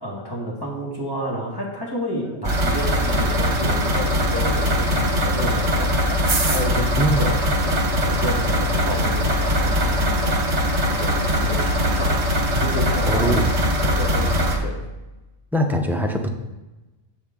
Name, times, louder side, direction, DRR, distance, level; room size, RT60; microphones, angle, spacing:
voice 1, 0.0-10.4 10.8-13.4 13.8-14.8, equal, 20° left, -4 dB, 1.9 m, -30 dB
sound 1, 2.4-14.6, equal, 65° right, 1.6 m, -21 dB
voice 2, 13.1-13.5 15.5-16.3, equal, 5° right, 3 dB, 0.3 m, -22 dB
8.9 x 5.5 x 3.6 m, 1.0 s
omnidirectional pair, 1.3 m